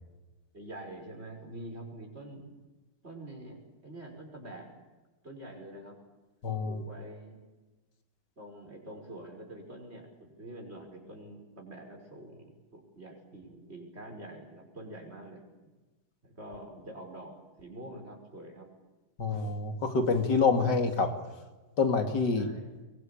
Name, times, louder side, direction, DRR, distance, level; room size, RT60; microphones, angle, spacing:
voice 1, 0.5-2.5 3.0-4.7 5.2-6.0 6.6-7.4 8.4-15.4 16.2-18.7 22.4-22.7, right 1 dB, 35° right, 2 dB, 6.2 m, -46 dB
voice 2, 6.4-6.8 19.2-21.1 21.8-22.5, left 4 dB, 85° left, 6 dB, 3.0 m, -27 dB
23.5 x 22.5 x 8.7 m, 1.2 s
omnidirectional pair, 1.8 m